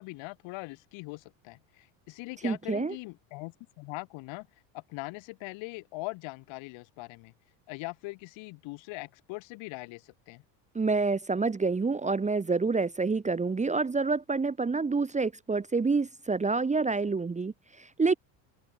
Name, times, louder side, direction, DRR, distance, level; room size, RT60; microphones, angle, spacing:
voice 1, 0.0-4.5 4.7-7.3 7.7-10.4, left 25 dB, 65° left, 7.6 m, -41 dB
voice 2, 2.4-2.9 10.7-18.1, right 4 dB, 15° right, 1.3 m, -28 dB
open air
supercardioid pair, 100°, 48 cm